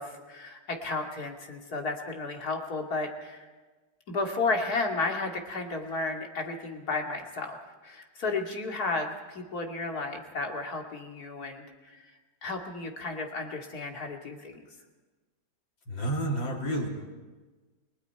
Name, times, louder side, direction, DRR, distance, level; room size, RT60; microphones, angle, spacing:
voice 1, 0.0-3.5 4.1-7.6 7.8-12.1 12.4-14.5, left 3 dB, 55° left, 2 dB, 2.8 m, -33 dB
voice 2, 15.9-16.9, right 1 dB, 85° left, -1 dB, 4.2 m, -30 dB
30.0 x 20.0 x 4.7 m, 1.3 s
omnidirectional pair, 2.0 m